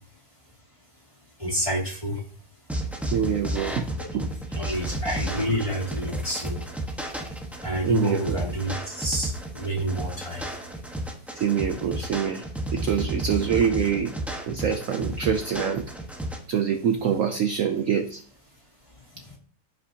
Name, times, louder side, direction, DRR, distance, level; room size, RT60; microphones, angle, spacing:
voice 1, 1.4-2.2 4.5-6.6 7.6-10.5 19.1-19.4, equal, 20° left, -2 dB, 2.4 m, -29 dB
sound 1, 2.7-16.4, right 1 dB, ahead, 0.9 m, -32 dB
voice 2, 3.1-3.9 4.1-4.3 7.9-8.4 11.3-12.4 12.7-14.1 14.5-15.9 16.5-18.2, right 8 dB, 65° right, 7 dB, 0.9 m, -25 dB
15.0 x 5.5 x 2.8 m, 0.43 s
omnidirectional pair, 1.8 m